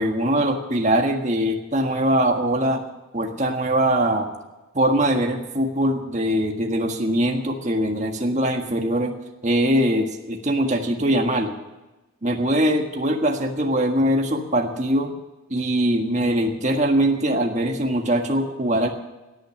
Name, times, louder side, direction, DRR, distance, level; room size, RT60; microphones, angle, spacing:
voice 1, 0.0-2.8 3.1-4.3 4.7-9.2 9.4-11.5 12.2-15.1 15.5-18.9, right 1 dB, 35° right, 3 dB, 1.6 m, -22 dB
17.0 x 9.1 x 7.4 m, 1.1 s
head